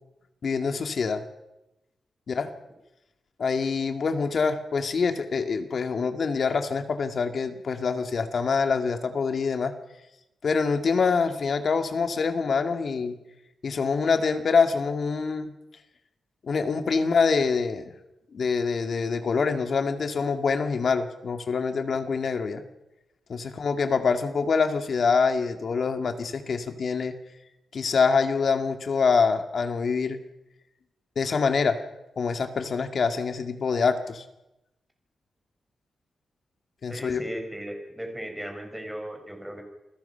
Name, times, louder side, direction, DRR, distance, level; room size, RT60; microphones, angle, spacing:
voice 1, 0.4-1.2 2.3-2.5 3.4-9.7 10.4-13.2 13.6-15.5 16.4-17.8 18.3-22.6 23.3-27.1 27.7-30.2 31.2-31.8 32.2-34.2 36.8-37.2, left 5 dB, 55° left, 7 dB, 2.1 m, -25 dB
voice 2, 36.9-39.6, right 1 dB, 5° right, 4 dB, 5.2 m, -36 dB
29.0 x 20.5 x 5.8 m, 0.94 s
wide cardioid pair, 130°, 0 cm